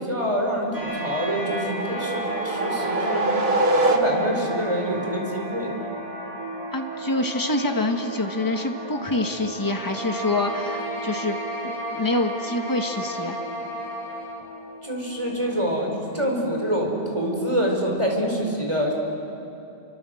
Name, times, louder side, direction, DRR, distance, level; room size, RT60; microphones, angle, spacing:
voice 1, 0.0-3.3 3.8-5.8 14.8-18.9, equal, 30° right, 0 dB, 4.9 m, -26 dB
sound 1, 0.7-18.0, right 1 dB, 90° right, 6.1 m, -36 dB
sound 2, 1.3-4.6, right 2 dB, 70° right, 1.9 m, -24 dB
voice 2, 6.7-11.4 11.6-13.4, left 2 dB, 20° left, 4 dB, 1.7 m, -26 dB
sound 3, 9.6-14.5, right 1 dB, 65° left, 4.6 m, -33 dB
29.5 x 25.5 x 7.9 m, 2.8 s
omnidirectional pair, 1.1 m